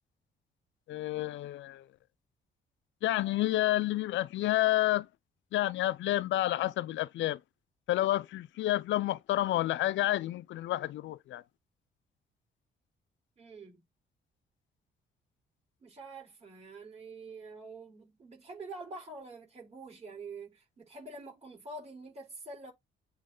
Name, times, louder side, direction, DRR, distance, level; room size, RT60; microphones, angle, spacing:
voice 1, 0.9-1.8 3.0-5.1 5.5-7.4 7.9-11.4, left 15 dB, 70° left, 0.5 m, -29 dB
voice 2, 13.4-13.8 15.8-22.7, right 3 dB, 35° right, 4.6 m, -46 dB
8.5 x 3.1 x 3.8 m
cardioid pair, 90°, 20 cm